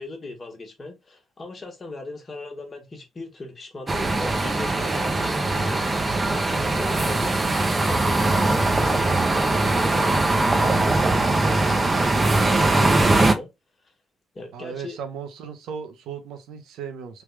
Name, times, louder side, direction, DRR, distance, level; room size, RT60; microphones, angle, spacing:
voice 1, 0.0-13.5 14.3-15.0, left 2 dB, 35° left, 1.2 m, -38 dB
sound 1, 3.9-13.3, right 2 dB, 25° right, 0.6 m, -21 dB
voice 2, 14.5-17.2, right 7 dB, 85° right, 0.7 m, -36 dB
3.4 x 2.3 x 3.1 m
cardioid pair, 90°, 0 cm